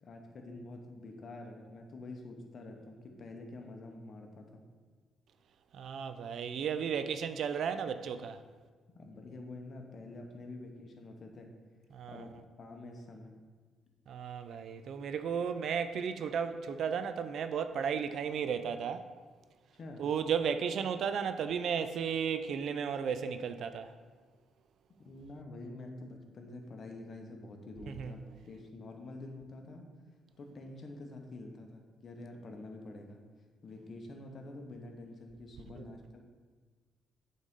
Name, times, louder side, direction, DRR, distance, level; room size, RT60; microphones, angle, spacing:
voice 1, 0.0-4.6 8.9-11.5 12.1-13.3 19.7-20.0 25.0-29.9 30.4-33.2 33.6-36.2, left 2 dB, 50° left, 1.0 m, -47 dB
voice 2, 5.7-8.4 11.9-12.2 14.1-19.1 20.0-23.9 27.9-28.1, right 7 dB, 65° right, 0.4 m, -34 dB
8.2 x 3.9 x 3.7 m
cardioid pair, 90°, 0 cm